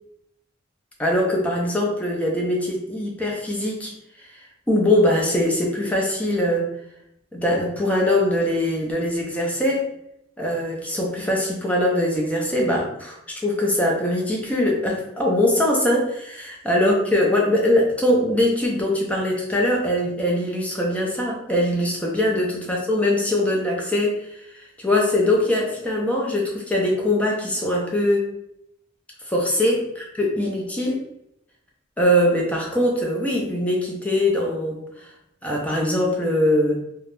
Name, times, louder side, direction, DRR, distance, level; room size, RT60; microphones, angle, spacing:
voice 1, 1.0-3.9 4.7-6.7 7.3-9.9 10.4-28.3 29.3-31.0 32.0-35.1 35.4-36.8, left 1 dB, 5° left, -2 dB, 0.4 m, -22 dB
2.3 x 2.0 x 2.9 m, 0.76 s
head